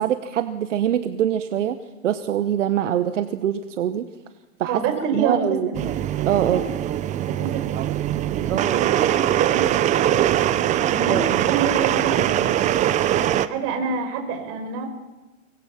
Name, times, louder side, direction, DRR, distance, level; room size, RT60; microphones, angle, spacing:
voice 1, 0.0-1.8 2.0-4.1 4.6-4.8 5.1-5.7 6.3-6.6 8.5-8.9 11.0-11.5, right 10 dB, 70° right, 10 dB, 1.3 m, -23 dB
voice 2, 4.6-5.8 6.5-6.6 7.3-7.8 8.3-9.7 10.0-10.4 10.9-11.2 11.4-12.4 13.1-14.9, right 6 dB, 35° right, 6 dB, 5.0 m, -28 dB
sound 1, 5.7-13.5, right 12 dB, 20° right, 0.7 m, -22 dB
24.5 x 19.5 x 5.9 m, 1.1 s
hypercardioid pair, 130°, 39 cm